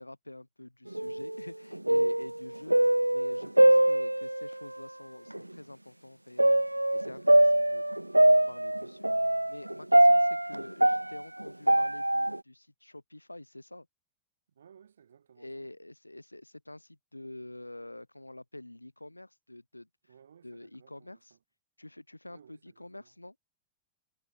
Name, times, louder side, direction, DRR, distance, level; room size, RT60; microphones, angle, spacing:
voice 1, 0.0-7.9 8.3-13.9 15.4-19.9 20.4-21.3 21.8-23.3, left 1 dB, 85° left, 4.9 m, -47 dB
sound 1, 0.9-1.5 1.7-4.5 5.3-5.4 6.4-12.4, right 1 dB, 85° right, 0.4 m, -23 dB
voice 2, 2.0-2.3 3.6-4.0 14.5-15.7 20.1-21.4 22.3-23.1, right 8 dB, 70° right, 7.9 m, -60 dB
figure-of-eight pair, 90°, 0 cm